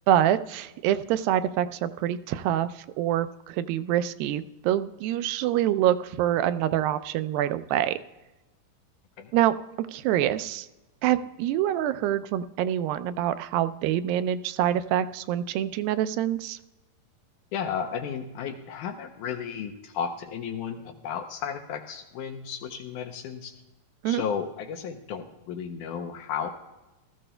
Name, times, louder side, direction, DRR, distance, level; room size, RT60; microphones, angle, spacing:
voice 1, 0.1-8.0 9.3-10.7 11.0-16.6 24.0-24.2, right 11 dB, 90° right, 12 dB, 2.3 m, -26 dB
voice 2, 17.5-23.5 24.1-26.5, left 7 dB, 75° left, 5 dB, 2.0 m, -33 dB
17.0 x 14.0 x 2.2 m, 1.0 s
omnidirectional pair, 4.0 m